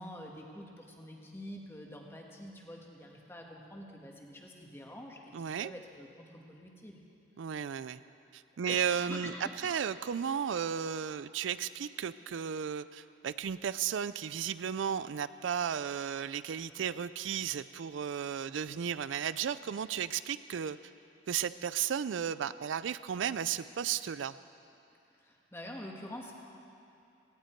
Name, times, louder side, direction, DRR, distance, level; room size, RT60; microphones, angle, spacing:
voice 1, 0.0-5.3 5.6-7.0 8.7-9.8 25.2-26.3, left 1 dB, 15° left, 0 dB, 1.6 m, -46 dB
voice 2, 5.3-5.7 7.4-8.0 8.3-20.8 21.3-24.3, right 8 dB, 90° right, 15 dB, 0.4 m, -34 dB
18.0 x 17.0 x 4.5 m, 2.6 s
head